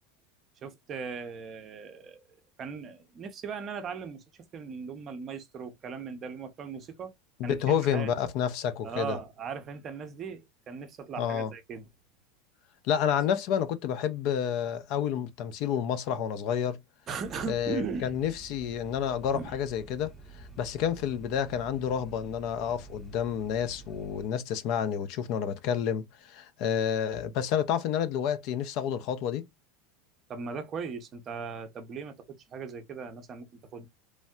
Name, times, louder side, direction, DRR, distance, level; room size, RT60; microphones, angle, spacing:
voice 1, 0.6-2.2 2.6-4.2 4.5-7.1 7.4-8.1 8.8-11.9 17.1-18.1 19.3-19.5 30.3-32.1 32.5-33.9, right 5 dB, 25° right, 0.6 m, -38 dB
voice 2, 7.4-9.2 11.2-11.5 12.8-16.8 17.5-29.4, left 8 dB, 45° left, 0.4 m, -29 dB
sound 1, 17.2-24.3, right 3 dB, 10° left, 0.8 m, -49 dB
3.1 x 2.6 x 2.2 m
supercardioid pair, 165°, 0 cm